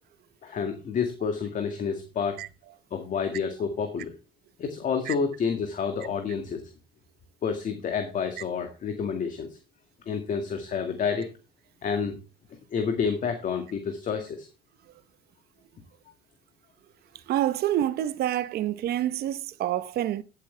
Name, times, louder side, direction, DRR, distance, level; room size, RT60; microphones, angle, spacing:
voice 1, 0.4-2.4 2.9-4.1 4.6-6.6 7.4-9.6 10.1-11.3 11.8-12.2 12.7-14.5, left 6 dB, 50° left, 1.9 m, -29 dB
voice 2, 17.1-20.2, right 12 dB, 70° right, 0.9 m, -27 dB
14.5 x 8.0 x 3.3 m
cardioid pair, 110°, 17 cm